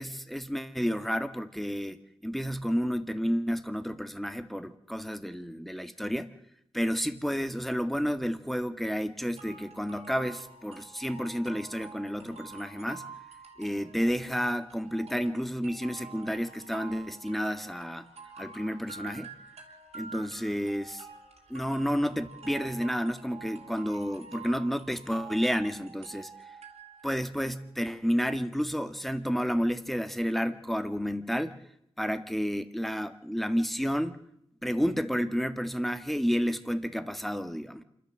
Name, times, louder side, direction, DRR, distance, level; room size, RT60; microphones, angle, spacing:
voice 1, 0.0-2.0 2.2-6.3 6.7-13.0 13.6-18.1 18.4-19.3 19.9-21.1 21.5-26.3 27.0-31.6 32.0-34.2 34.6-37.8, equal, ahead, 10 dB, 1.9 m, -31 dB
sound 1, 9.4-27.3, right 5 dB, 80° right, 3.2 m, -48 dB
27.0 x 12.5 x 7.5 m, 0.76 s
cardioid pair, 55°, 11 cm